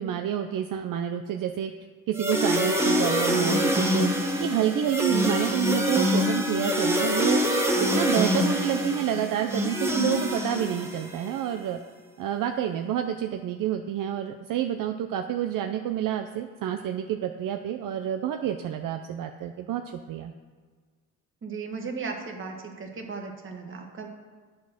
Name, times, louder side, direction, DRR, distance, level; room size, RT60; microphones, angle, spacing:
voice 1, 0.0-1.7 2.1-4.1 4.4-7.4 7.8-11.8 12.2-19.8 20.1-20.3, right 10 dB, 65° right, 6 dB, 0.5 m, -28 dB
sound 1, 2.1-11.3, equal, 5° right, 1.1 m, -25 dB
voice 2, 21.4-24.1, right 4 dB, 35° right, 2 dB, 1.3 m, -36 dB
9.3 x 4.4 x 5.9 m, 1.5 s
cardioid pair, 130°, 36 cm